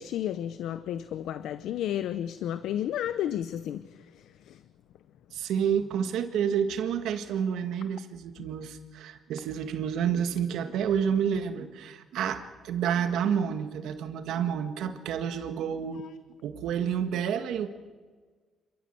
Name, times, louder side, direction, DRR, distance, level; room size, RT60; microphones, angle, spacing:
voice 1, 0.0-3.8, left 11 dB, 80° left, 13 dB, 0.7 m, -32 dB
voice 2, 5.3-16.0 16.4-17.7, right 8 dB, 85° right, 9 dB, 1.7 m, -29 dB
28.0 x 13.5 x 7.9 m, 1.4 s
cardioid pair, 90°, 0 cm